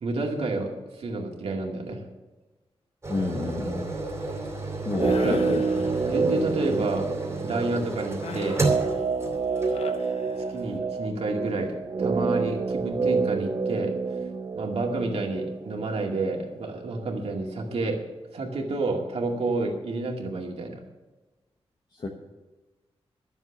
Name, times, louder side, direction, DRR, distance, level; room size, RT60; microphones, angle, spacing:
voice 1, 0.0-2.0 5.2-5.4 6.0-7.1 7.4-8.6 10.5-11.7 12.0-13.9 14.6-18.0 18.3-20.8, right 2 dB, 70° right, 0 dB, 2.4 m, -29 dB
sound 1, 3.0-10.0 10.6-10.7, right 2 dB, 25° right, 2.9 m, -32 dB
voice 2, 3.1-3.9 4.8-5.6 21.9-22.1, left 3 dB, 40° left, 1 dB, 1.3 m, -29 dB
sound 2, 4.9-17.0 17.2-17.3, right 4 dB, 45° right, 0.7 m, -28 dB
sound 3, 5.0-6.5 8.2-10.9, left 5 dB, 70° left, 0.9 m, -41 dB
13.0 x 7.3 x 7.2 m, 1.2 s
wide cardioid pair, 165°, 11 cm